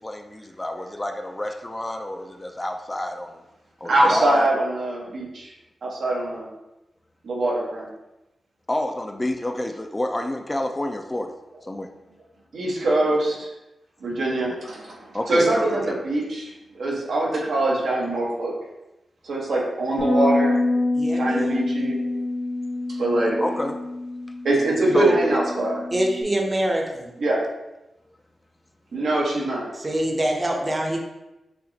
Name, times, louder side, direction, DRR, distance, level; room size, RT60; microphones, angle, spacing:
voice 1, 0.0-3.4 3.8-4.5 8.7-11.3 11.7-11.9 15.1-16.0 23.4-23.8 24.9-25.2, left 1 dB, 15° left, 4 dB, 0.3 m, -29 dB
voice 2, 3.8-5.5 5.8-6.5 7.2-7.9 12.5-13.5 14.0-15.0 15.3-18.5 19.2-20.6 21.1-22.0 23.0-23.4 24.4-25.8 27.2-27.4 28.9-29.6, right 1 dB, 80° right, -3 dB, 1.1 m, -23 dB
Bass guitar, 20.0-26.2, left 2 dB, 80° left, 0.7 m, -26 dB
voice 3, 20.9-21.6 25.9-27.1 29.7-31.0, right 1 dB, 25° right, 0 dB, 0.7 m, -25 dB
5.6 x 2.9 x 2.7 m, 0.96 s
wide cardioid pair, 115°, 0 cm